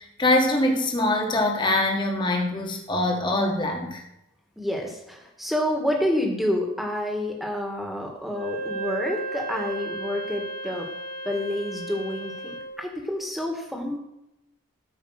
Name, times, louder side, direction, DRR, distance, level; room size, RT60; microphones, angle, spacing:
voice 1, 0.0-4.0, left 1 dB, 20° left, 1 dB, 1.6 m, -23 dB
voice 2, 4.6-10.9 11.2-14.0, left 1 dB, ahead, 1 dB, 1.7 m, -28 dB
Wind instrument woodwind instrument, 8.3-12.8, right 2 dB, 65° left, 2.6 m, -34 dB
13.0 x 5.2 x 6.5 m, 0.90 s
head